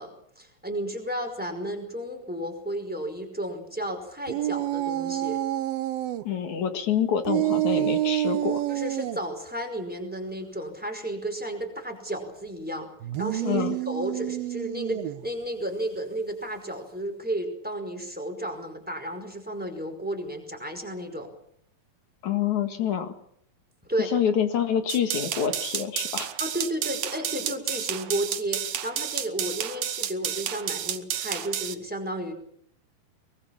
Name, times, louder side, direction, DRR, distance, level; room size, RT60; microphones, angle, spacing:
voice 1, 0.0-5.4 8.7-12.9 13.2-21.3 23.8-24.1 26.4-32.3, right 1 dB, ahead, 3 dB, 4.7 m, -33 dB
sound 1, 4.3-6.2 7.2-9.2 13.0-15.2, right 14 dB, 80° right, 2.9 m, -28 dB
voice 2, 6.2-8.6 13.4-13.8 22.2-23.1 24.0-26.3, left 8 dB, 60° left, 8 dB, 3.1 m, -27 dB
sound 2, 24.9-31.7, right 10 dB, 60° right, 1.8 m, -31 dB
24.0 x 21.0 x 7.3 m, 0.67 s
omnidirectional pair, 4.2 m